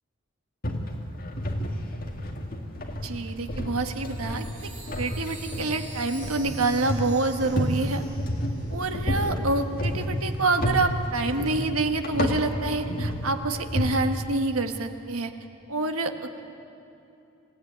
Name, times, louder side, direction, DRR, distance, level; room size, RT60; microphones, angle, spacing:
sound 1, 0.6-13.9, equal, 40° left, 2.1 m, -31 dB
voice 1, 3.0-8.0 8.7-15.3 15.7-16.4, right 3 dB, 85° right, 6 dB, 1.5 m, -27 dB
Chime, 3.8-9.4, right 3 dB, 35° right, 5.0 m, -47 dB
27.5 x 16.0 x 9.3 m, 2.8 s
head